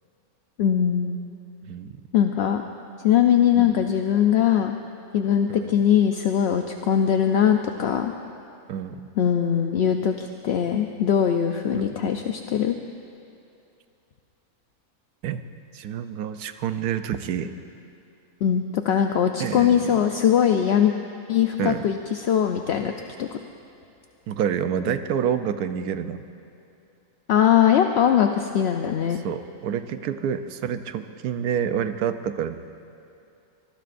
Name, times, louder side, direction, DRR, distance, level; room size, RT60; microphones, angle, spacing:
voice 1, 0.6-1.2 2.1-2.6 3.0-4.7 5.1-8.1 9.2-12.8 18.4-20.9 21.3-22.9 23.2-23.4 27.3-29.2, left 9 dB, 60° left, 5 dB, 0.7 m, -21 dB
voice 2, 1.7-2.0 3.6-3.7 5.5-5.7 8.7-9.0 11.7-12.0 15.2-15.4 15.7-17.5 19.4-20.0 21.6-21.9 24.3-26.2 29.2-32.6, right 8 dB, 90° right, 10 dB, 1.2 m, -28 dB
24.5 x 20.0 x 2.6 m, 2.6 s
omnidirectional pair, 1.6 m